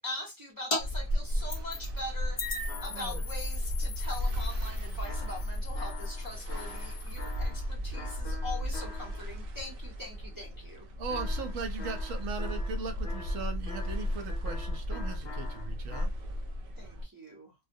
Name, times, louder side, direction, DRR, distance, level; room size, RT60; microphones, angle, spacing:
voice 1, 0.0-10.9 16.8-17.5, left 1 dB, 20° right, 0.7 m, -42 dB
sound 1, 0.7-0.8 1.1-2.0 2.4-7.5, left 1 dB, 35° left, 0.5 m, -35 dB
sound 2, 0.8-17.1, left 1 dB, 60° right, 0.6 m, -35 dB
sound 3, 2.7-3.4 5.0-9.4 11.1-16.1, left 4 dB, 65° left, 0.8 m, -47 dB
voice 2, 2.9-3.2 11.0-16.1, right 5 dB, 80° right, 1.0 m, -39 dB
2.2 x 2.2 x 2.6 m
omnidirectional pair, 1.3 m